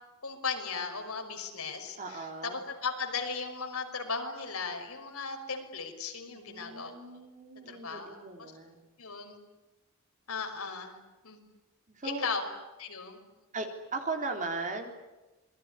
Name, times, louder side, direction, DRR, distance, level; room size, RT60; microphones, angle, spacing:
voice 1, 0.2-6.9 7.7-8.5 9.0-9.4 10.3-11.0 11.2-11.4 12.0-12.4 12.8-13.2, left 5 dB, 75° left, 4 dB, 5.7 m, -36 dB
voice 2, 2.0-2.6 6.3-8.8 12.0-12.3 13.5-14.9, right 3 dB, 35° right, 4 dB, 3.8 m, -38 dB
27.5 x 21.5 x 10.0 m, 1.1 s
head